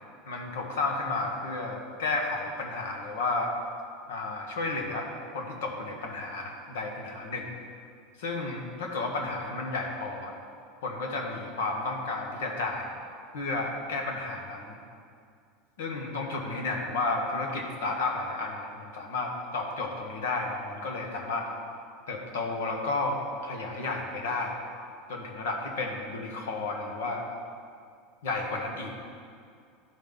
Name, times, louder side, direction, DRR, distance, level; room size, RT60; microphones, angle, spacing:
voice 1, 0.2-3.5 4.1-5.1 5.3-7.5 8.2-10.3 10.8-12.9 13.3-14.8 15.8-21.5 22.1-24.6 25.1-27.2 28.2-29.0, left 3 dB, 90° left, 2 dB, 1.3 m, -32 dB
12.0 x 5.4 x 3.9 m, 2.3 s
supercardioid pair, 115°, 0 cm